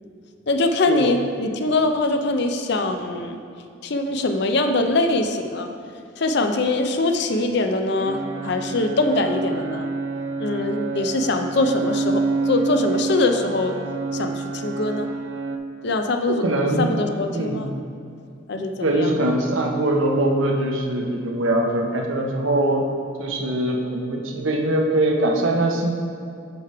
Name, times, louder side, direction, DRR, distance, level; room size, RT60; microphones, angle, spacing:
voice 1, 0.5-3.4 3.8-5.7 6.2-9.9 10.4-13.8 14.1-15.1 15.8-16.4 16.8-17.7 18.5-19.2, left 2 dB, 60° left, 5 dB, 0.5 m, -23 dB
sound 1, 8.1-15.6, right 3 dB, 65° right, 0.4 m, -27 dB
voice 2, 16.3-17.0 17.3-17.7 18.8-22.8 23.2-25.9, right 1 dB, 80° right, 1 dB, 0.9 m, -22 dB
6.9 x 4.9 x 4.6 m, 2.4 s
head